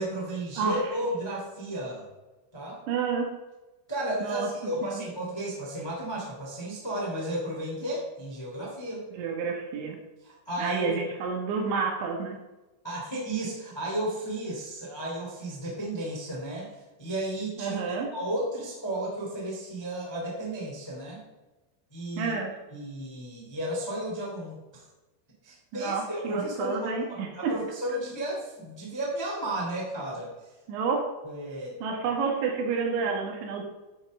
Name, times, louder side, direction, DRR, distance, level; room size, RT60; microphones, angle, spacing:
voice 1, 0.0-2.0 2.5-2.8 3.9-9.0 10.2-10.9 12.8-16.7 17.0-21.2 21.9-22.3 22.7-24.8 25.4-30.3 31.2-31.7, right 1 dB, 15° left, -4 dB, 1.0 m, -33 dB
voice 2, 2.9-3.3 4.2-4.5 4.8-5.0 9.1-10.0 10.6-12.4 17.6-18.1 22.2-22.5 25.7-27.5 30.7-31.1 31.8-33.6, right 5 dB, 70° right, 1 dB, 3.6 m, -29 dB
11.0 x 6.0 x 5.4 m, 1.1 s
omnidirectional pair, 5.8 m